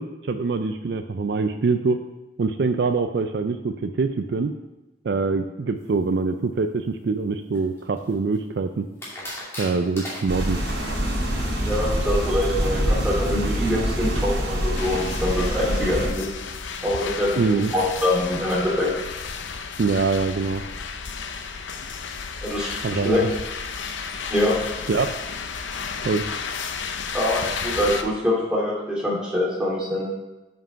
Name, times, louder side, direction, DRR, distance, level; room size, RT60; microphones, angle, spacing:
voice 1, 0.0-2.0 2.4-4.5 5.0-8.8 9.6-10.6 17.4-17.7 19.8-20.6 22.8-23.3 24.9-25.1 26.0-26.2, right 4 dB, 60° right, 8 dB, 0.4 m, -24 dB
sound 1, 7.5-8.4 9.0-11.0, left 1 dB, 15° left, 2.3 m, -36 dB
sound 2, 10.3-16.1, equal, 75° right, 2.8 m, -25 dB
voice 2, 11.7-16.3 16.8-18.9 22.4-23.2 24.3-24.6 27.1-30.1, left 1 dB, 5° right, -6 dB, 2.4 m, -24 dB
sound 3, 14.8-28.0, left 5 dB, 80° left, 0.6 m, -33 dB
7.7 x 5.3 x 5.6 m, 1.0 s
head